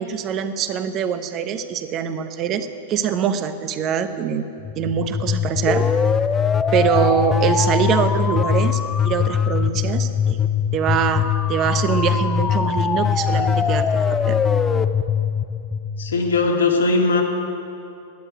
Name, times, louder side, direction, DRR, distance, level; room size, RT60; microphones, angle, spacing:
voice 1, 0.0-4.5 4.8-5.9 6.7-10.5 10.7-11.2 11.5-14.4, right 8 dB, 35° right, 10 dB, 1.0 m, -23 dB
sound 1, 4.6-16.5, left 7 dB, 20° left, 0.6 m, -21 dB
voice 2, 16.0-17.2, left 3 dB, 85° left, 1 dB, 2.2 m, -19 dB
11.5 x 9.3 x 9.2 m, 2.6 s
hypercardioid pair, 115°, 0 cm